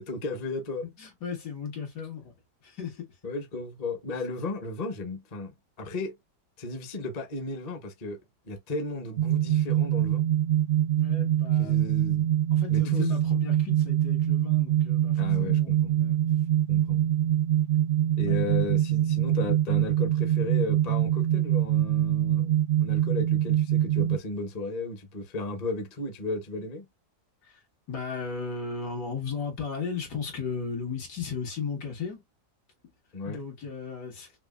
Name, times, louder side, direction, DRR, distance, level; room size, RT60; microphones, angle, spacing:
voice 1, 0.0-0.9 3.2-6.2 6.6-8.2 8.5-10.2 11.6-12.3 12.7-13.1 15.1-16.0 16.7-17.0 18.2-22.5 22.8-26.9 33.1-33.4, left 2 dB, 35° left, 0.6 m, -34 dB
voice 2, 1.0-2.3 2.6-3.1 11.0-11.9 12.5-16.2 18.3-18.4 27.4-27.6 27.9-32.2 33.3-34.3, left 5 dB, 80° left, 2.2 m, -36 dB
sound 1, 9.2-24.2, right 12 dB, 75° right, 0.6 m, -24 dB
5.9 x 2.2 x 2.3 m
omnidirectional pair, 1.8 m